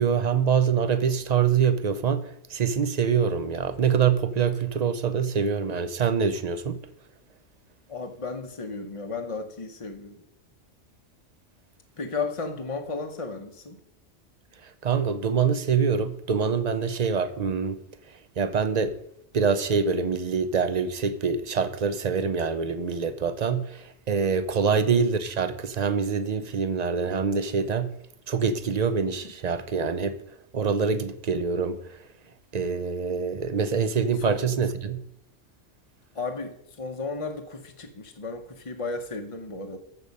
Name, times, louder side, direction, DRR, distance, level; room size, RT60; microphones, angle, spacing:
voice 1, 0.0-6.8 14.8-17.8 18.4-19.0 19.3-27.9 28.3-30.2 30.5-31.8 32.5-35.0, right 6 dB, 45° right, 0.6 m, -25 dB
voice 2, 7.9-10.2 12.0-13.8 34.2-34.4 36.1-39.8, left 3 dB, 30° left, 0.8 m, -34 dB
14.0 x 6.5 x 5.2 m
omnidirectional pair, 1.2 m